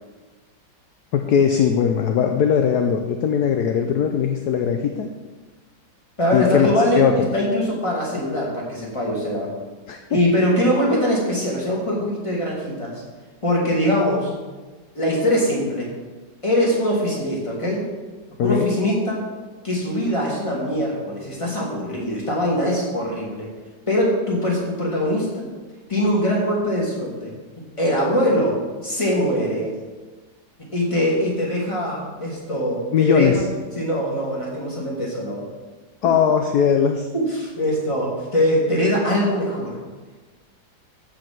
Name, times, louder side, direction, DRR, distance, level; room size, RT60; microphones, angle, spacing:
voice 1, 1.1-5.1 6.3-6.7 7.0-7.3 9.9-10.2 18.4-18.7 32.9-33.4 36.0-37.1, left 7 dB, 65° left, 5 dB, 1.2 m, -19 dB
voice 2, 6.2-9.5 10.1-13.0 13.4-14.3 14.9-15.9 16.4-17.8 18.4-19.2 19.6-23.5 23.9-25.5 25.9-27.3 27.8-28.5 28.8-29.7 30.7-33.3 33.8-35.5 37.1-39.8, equal, 15° left, -4 dB, 2.7 m, -22 dB
14.5 x 5.0 x 6.0 m, 1.3 s
omnidirectional pair, 2.0 m